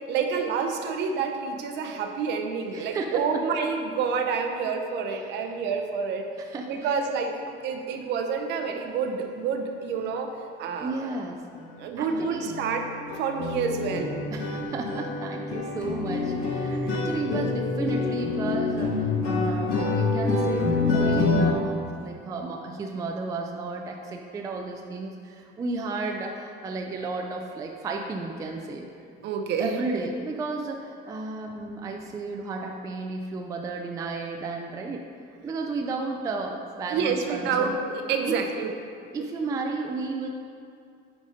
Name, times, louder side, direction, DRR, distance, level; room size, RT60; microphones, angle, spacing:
voice 1, 0.1-6.2 6.7-7.3 7.6-10.3 10.6-11.2 11.8-12.8 13.2-14.2 16.8-17.0 29.2-29.8 36.9-38.7, right 5 dB, 60° right, 4 dB, 0.7 m, -28 dB
voice 2, 2.7-3.4 5.3-5.6 6.4-7.0 10.8-11.4 12.0-12.5 14.3-28.9 29.6-35.0 35.4-37.7 38.2-38.4 39.1-40.3, right 3 dB, 15° right, 2 dB, 0.3 m, -33 dB
sound 1, 11.5-11.7 12.0-12.2 12.4-21.5, left 3 dB, 85° left, 1.6 m, -27 dB
8.5 x 4.2 x 5.0 m, 2.4 s
cardioid pair, 175°, 20 cm